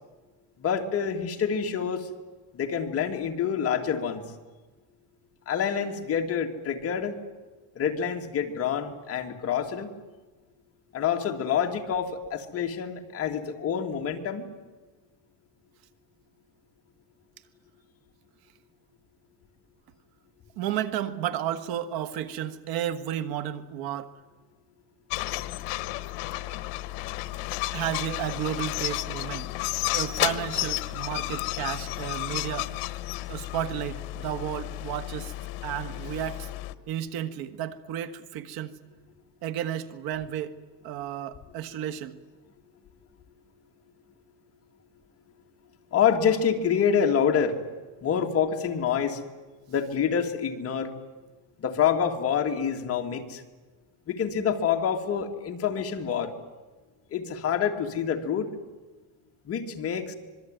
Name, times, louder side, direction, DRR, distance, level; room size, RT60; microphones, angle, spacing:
voice 1, 0.6-2.1 2.5-4.3 5.5-7.2 7.7-9.9 10.9-14.5 45.9-47.6 48.0-49.2 49.7-50.9 51.6-53.4 54.1-56.3 57.1-58.5 59.4-60.1, left 7 dB, 35° left, 3 dB, 2.6 m, -27 dB
voice 2, 20.6-24.1 27.7-29.5 29.9-32.7 33.3-35.3 35.6-36.5 36.9-38.8 39.4-40.6 40.8-42.2, right 10 dB, 65° right, 12 dB, 1.8 m, -32 dB
sound 1, 25.1-36.7, left 18 dB, 80° left, 1.3 m, -32 dB
25.5 x 22.5 x 9.3 m, 1.3 s
cardioid pair, 150°, 39 cm